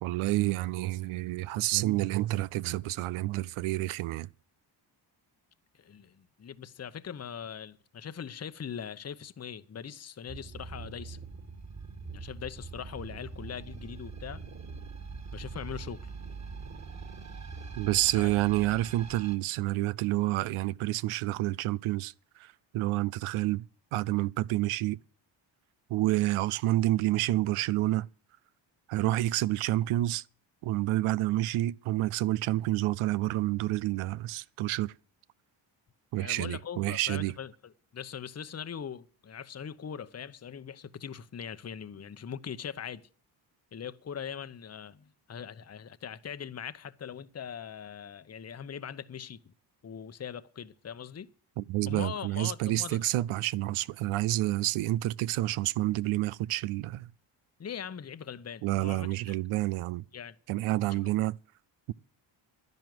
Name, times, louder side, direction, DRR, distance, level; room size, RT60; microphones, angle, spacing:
voice 1, 0.0-4.3 17.8-23.7 23.9-25.0 25.9-28.1 28.9-30.2 30.6-34.9 36.1-37.3 51.6-57.1 58.6-60.0 60.5-61.3 61.9-62.0, right 16 dB, 90° right, 0.6 m, -29 dB
voice 2, 5.7-11.2 12.1-14.4 15.3-16.0 18.1-18.3 36.2-43.1 43.7-49.5 49.8-51.3 51.9-53.0 57.6-59.4 60.1-60.4 60.8-61.0, left 8 dB, 30° left, 0.8 m, -41 dB
sound 1, 10.3-19.4, right 4 dB, 35° right, 2.6 m, -43 dB
11.0 x 10.5 x 7.7 m
cardioid pair, 70°, 48 cm